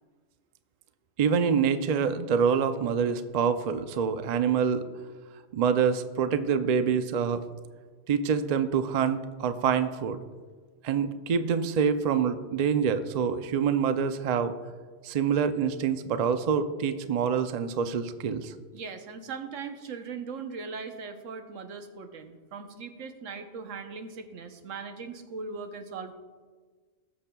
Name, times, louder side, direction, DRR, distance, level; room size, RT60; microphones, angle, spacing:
voice 1, 1.2-4.9 5.5-7.4 8.1-10.2 10.8-14.5 15.0-18.5, right 6 dB, 65° right, 10 dB, 0.4 m, -26 dB
voice 2, 18.7-26.1, right 5 dB, 85° right, 7 dB, 1.2 m, -39 dB
19.0 x 6.7 x 2.3 m, 1.5 s
omnidirectional pair, 1.3 m